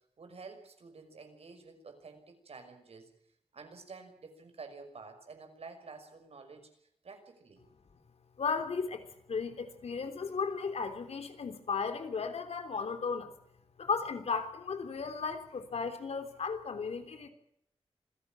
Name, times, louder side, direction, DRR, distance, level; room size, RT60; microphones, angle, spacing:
voice 1, 0.0-3.1 3.5-6.7 7.0-7.7, right 4 dB, 75° right, 7 dB, 5.9 m, -50 dB
voice 2, 8.4-13.3 13.8-17.3, left 5 dB, 85° left, 8 dB, 3.5 m, -35 dB
26.5 x 16.5 x 7.5 m, 0.73 s
wide cardioid pair, 85°, 10 cm